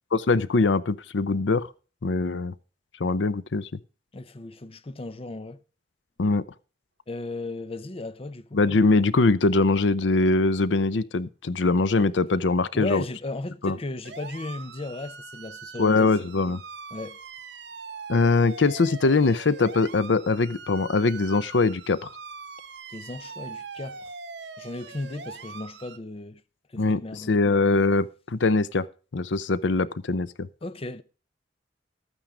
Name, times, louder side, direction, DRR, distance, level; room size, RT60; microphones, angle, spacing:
voice 1, 0.1-1.7 2.0-2.5 3.0-3.7 6.2-6.4 8.5-13.0 13.6-13.8 15.8-16.6 18.1-22.0 26.8-28.9 29.1-30.5, left 3 dB, 85° left, 0.6 m, -22 dB
voice 2, 4.1-5.6 7.1-8.6 12.7-16.1 16.9-17.2 22.9-24.1 24.6-26.4 26.7-27.6 30.6-31.0, left 2 dB, 30° left, 0.6 m, -35 dB
sound 1, 14.1-26.0, right 5 dB, 65° right, 1.0 m, -42 dB
13.0 x 9.1 x 4.9 m
head